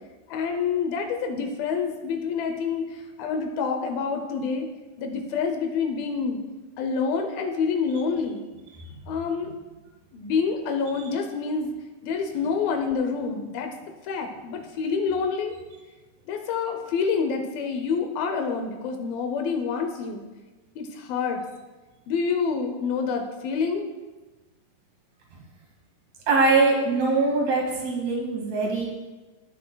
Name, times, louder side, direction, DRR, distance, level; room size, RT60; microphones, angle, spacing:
voice 1, 0.3-4.7 5.0-6.4 6.8-8.4 9.1-9.5 10.1-11.8 12.0-13.7 14.0-15.5 16.3-20.2 20.8-21.4 22.1-23.9, left 5 dB, 80° left, 5 dB, 2.4 m, -27 dB
voice 2, 26.3-28.9, right 3 dB, 50° right, -2 dB, 2.8 m, -22 dB
16.5 x 6.3 x 2.2 m, 1.2 s
omnidirectional pair, 4.4 m